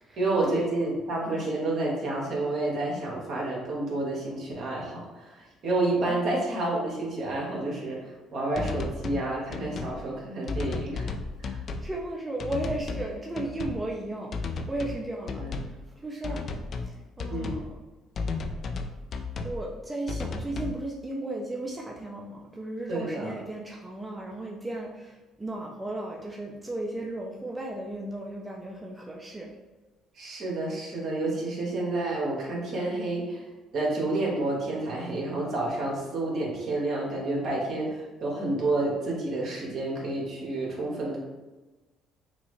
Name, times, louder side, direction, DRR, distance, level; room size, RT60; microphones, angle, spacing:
voice 1, 0.2-11.1 11.4-11.6 15.4-15.6 17.3-17.6 22.9-23.3 30.2-33.4 33.7-41.2, right 2 dB, 60° right, -3 dB, 1.5 m, -29 dB
sound 1, 8.5-9.2 9.5-10.0 10.5-11.9 12.4-13.1 13.4-13.8 14.3-15.0 15.3-15.8 16.2-16.9 17.2-17.7 18.2-19.6 20.1-20.8, left 4 dB, 50° left, 0.4 m, -33 dB
voice 2, 11.8-15.7 16.0-16.4 16.8-17.8 19.4-29.5, right 1 dB, 15° right, -1 dB, 0.6 m, -35 dB
6.0 x 2.1 x 3.2 m, 1.2 s
supercardioid pair, 75°, 0 cm